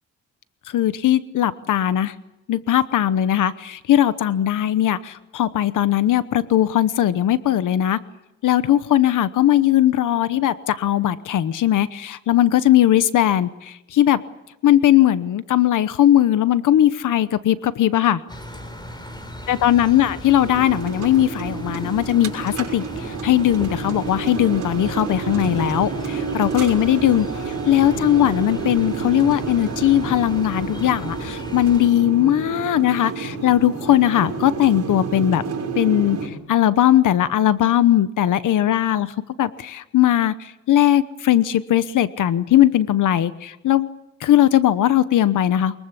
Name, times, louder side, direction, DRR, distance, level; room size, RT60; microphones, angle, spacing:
voice 1, 0.7-2.1 2.5-8.0 8.4-14.2 14.6-18.2 19.5-35.4 35.8-43.9 44.2-45.8, left 12 dB, 85° left, 13 dB, 1.0 m, -19 dB
sound 1, 18.3-31.9, left 1 dB, 15° left, 4.2 m, -37 dB
sound 2, 20.4-36.3, right 5 dB, 60° right, 6.2 m, -29 dB
23.5 x 22.0 x 8.3 m, 0.92 s
wide cardioid pair, 130°, 30 cm